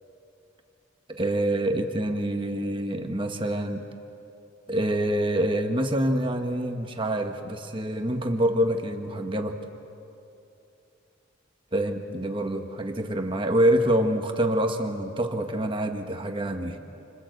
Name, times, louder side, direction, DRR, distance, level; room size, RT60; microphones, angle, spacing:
voice 1, 1.1-3.9 4.7-9.6 11.7-16.8, right 1 dB, 25° right, 5 dB, 1.3 m, -26 dB
28.5 x 25.5 x 7.9 m, 2.7 s
head